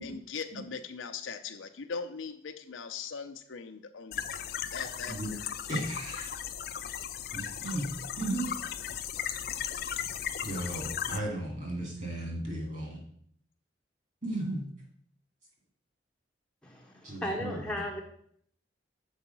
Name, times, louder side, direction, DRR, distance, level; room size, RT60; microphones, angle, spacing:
voice 1, 0.0-4.4 4.7-5.4, left 5 dB, 90° left, 8 dB, 0.6 m, -40 dB
sound 1, 4.1-11.2, left 9 dB, 50° left, 0.4 m, -36 dB
voice 2, 5.7-6.3 7.3-7.9 8.2-8.5 10.4-13.0 14.2-14.6 17.0-17.8, right 1 dB, 40° right, 0 dB, 2.4 m, -35 dB
voice 3, 16.6-18.0, left 1 dB, 5° left, -1 dB, 0.7 m, -36 dB
7.1 x 4.7 x 5.4 m, 0.64 s
head